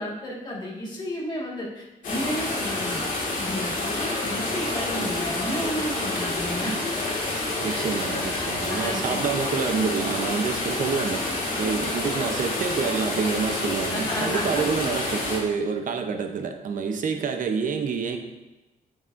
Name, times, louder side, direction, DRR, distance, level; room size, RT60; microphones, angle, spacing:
voice 1, 0.0-3.0 3.4-6.8 7.6-7.9 8.1-9.2 13.8-14.6, equal, 30° left, -4 dB, 1.9 m, -33 dB
sound 1, 2.0-15.4, left 2 dB, 65° left, 2.0 m, -28 dB
voice 2, 7.6-18.2, right 5 dB, 60° right, 6 dB, 0.8 m, -28 dB
9.4 x 6.9 x 2.6 m, 1.1 s
wide cardioid pair, 135°, 15 cm